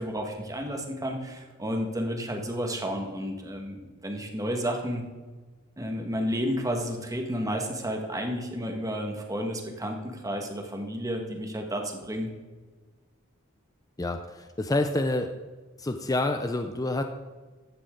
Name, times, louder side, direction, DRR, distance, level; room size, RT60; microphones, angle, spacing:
voice 1, 0.0-5.0 5.8-12.3, equal, 15° right, 2 dB, 1.8 m, -31 dB
voice 2, 14.0-15.3 15.8-17.0, left 2 dB, 15° left, 7 dB, 0.6 m, -28 dB
15.0 x 11.5 x 3.9 m, 1.3 s
head